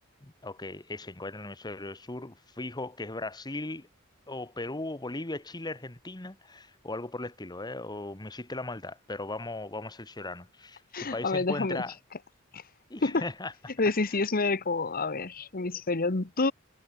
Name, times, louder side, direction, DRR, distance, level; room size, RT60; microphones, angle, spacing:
voice 1, 0.2-3.9 4.3-11.9 12.9-13.7 14.1-14.2, left 2 dB, 20° left, 1.4 m, -38 dB
voice 2, 10.9-11.8 12.5-12.6 13.0-13.2 13.8-16.5, left 3 dB, 45° left, 1.2 m, -28 dB
head